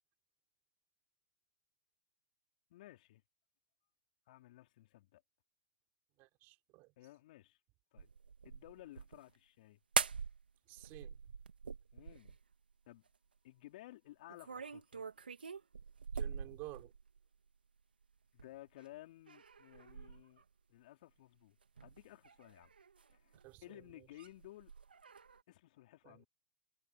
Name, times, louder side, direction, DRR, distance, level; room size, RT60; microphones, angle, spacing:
voice 1, 2.7-3.2 4.3-5.2 7.0-7.6 7.9-8.1 8.4-9.8 11.9-12.4 12.9-13.0 13.4-15.0 18.3-20.4 20.7-21.6 21.8-22.7 23.1-23.4 23.6-24.7 25.5-26.3, left 16 dB, 60° left, 4.1 m, -56 dB
voice 2, 6.2-6.9 10.7-11.2 16.1-16.9 23.3-24.1 26.0-26.2, right 23 dB, 45° right, 4.3 m, -52 dB
sound 1, 8.0-9.3 9.9-10.5 10.8-12.5 14.3-17.2 18.4-18.9 19.3-20.4 21.6-23.6 23.9-25.4, right 5 dB, 85° right, 1.9 m, -43 dB
hypercardioid pair, 110°, 5 cm